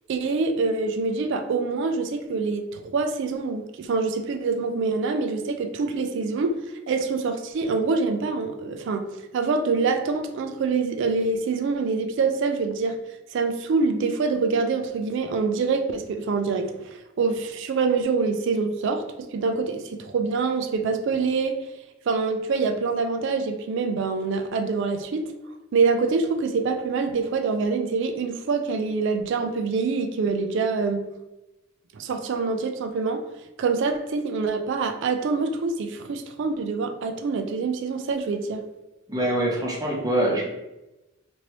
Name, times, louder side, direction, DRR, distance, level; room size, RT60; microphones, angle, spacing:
voice 1, 0.1-6.6 6.9-13.0 13.3-21.6 22.1-25.3 25.7-31.0 31.9-33.3 33.6-38.6, right 4 dB, 60° right, 6 dB, 0.3 m, -25 dB
voice 2, 39.1-40.4, right 1 dB, 20° right, -2 dB, 0.7 m, -24 dB
3.0 x 2.6 x 3.0 m, 0.98 s
head